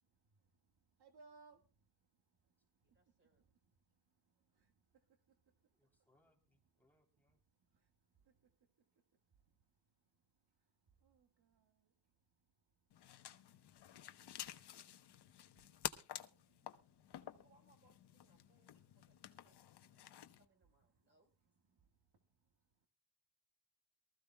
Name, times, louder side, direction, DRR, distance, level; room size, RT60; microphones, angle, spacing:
voice 1, 0.0-6.1 7.5-17.5 18.4-20.4 20.9-21.2 21.7-22.9, right 4 dB, 65° right, 5 dB, 1.8 m, -73 dB
voice 2, 2.8-3.5 13.4-13.5 17.2-21.3, right 2 dB, 30° right, 3 dB, 5.3 m, -75 dB
voice 3, 5.7-7.4, left 1 dB, 5° left, 1 dB, 3.3 m, -78 dB
sound 1, 12.9-20.5, left 11 dB, 75° left, 1.0 m, -51 dB
23.0 x 14.5 x 2.3 m, 0.31 s
wide cardioid pair, 125°, 41 cm